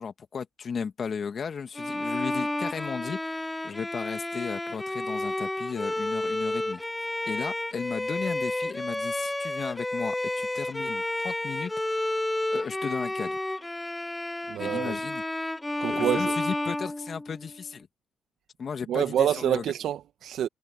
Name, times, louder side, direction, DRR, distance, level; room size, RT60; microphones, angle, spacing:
voice 1, 0.0-6.8 7.3-12.1 12.5-13.4 14.6-15.2 15.9-17.9 18.6-19.6, left 6 dB, 45° left, 1.9 m, -35 dB
Bowed string instrument, 1.8-17.6, left 1 dB, 10° left, 0.6 m, -31 dB
voice 2, 14.5-15.0 15.8-16.4 18.9-20.5, right 10 dB, 65° right, 1.1 m, -27 dB
cardioid pair, 100°, 0 cm